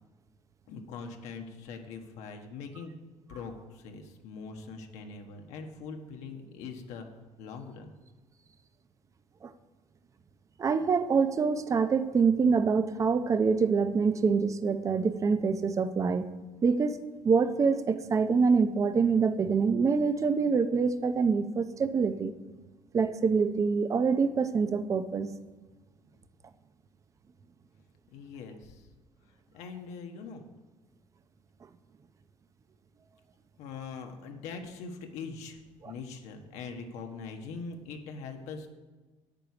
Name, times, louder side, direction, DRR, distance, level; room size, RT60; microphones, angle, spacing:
voice 1, 0.7-2.9 3.3-7.1 7.4-7.9 28.1-28.9 29.5-30.5 33.6-38.7, left 5 dB, 80° left, 4 dB, 1.2 m, -42 dB
voice 2, 10.6-16.3 16.6-17.0 17.2-22.3 22.9-25.3, right 5 dB, 30° right, 11 dB, 0.6 m, -25 dB
9.0 x 8.0 x 5.9 m, 1.3 s
cardioid pair, 125°, 11 cm